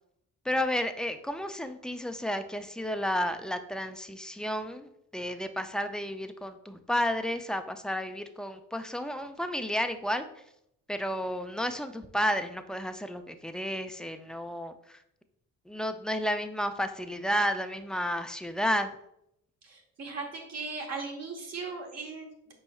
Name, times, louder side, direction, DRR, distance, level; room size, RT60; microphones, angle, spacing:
voice 1, 0.4-10.3 10.9-15.0 15.7-18.9, equal, 5° left, 7 dB, 0.3 m, -32 dB
voice 2, 19.6-22.5, right 4 dB, 60° right, 1 dB, 1.2 m, -38 dB
5.4 x 4.3 x 2.3 m, 0.76 s
cardioid pair, 90°, 30 cm